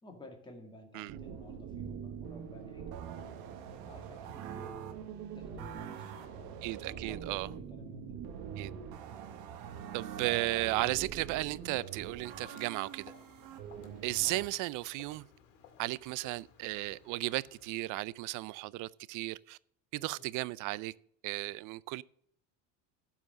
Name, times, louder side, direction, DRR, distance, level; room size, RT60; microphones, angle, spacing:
voice 1, 0.0-3.6 3.8-4.9 5.3-8.2 20.0-20.2, left 1 dB, 10° left, 2.1 m, -53 dB
sound 1, 1.1-14.5, right 8 dB, 70° right, 1.4 m, -44 dB
voice 2, 6.6-7.5 8.6-8.7 9.9-13.1 14.0-15.2 15.8-19.6 19.9-20.9 21.2-22.0, right 20 dB, 55° right, 0.5 m, -35 dB
Walk footsteps, 11.4-18.0, left 8 dB, 85° left, 2.2 m, -58 dB
12.5 x 5.0 x 6.3 m
supercardioid pair, 115°, 37 cm